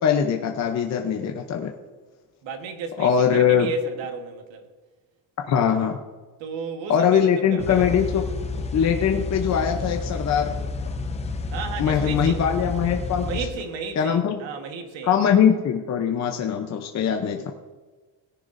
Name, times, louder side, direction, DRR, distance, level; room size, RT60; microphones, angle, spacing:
voice 1, 0.0-1.7 3.0-3.7 5.5-6.0 6.9-8.2 8.7-10.5 11.8-13.3 14.0-14.4 15.0-17.5, left 8 dB, 35° left, 0.7 m, -21 dB
voice 2, 2.4-4.7 6.4-8.2 11.5-12.4 13.2-15.2, right 5 dB, 70° right, 1.5 m, -34 dB
sound 1, 7.6-13.5, left 3 dB, 15° left, 0.3 m, -30 dB
18.0 x 10.5 x 2.6 m
cardioid pair, 175°, 48 cm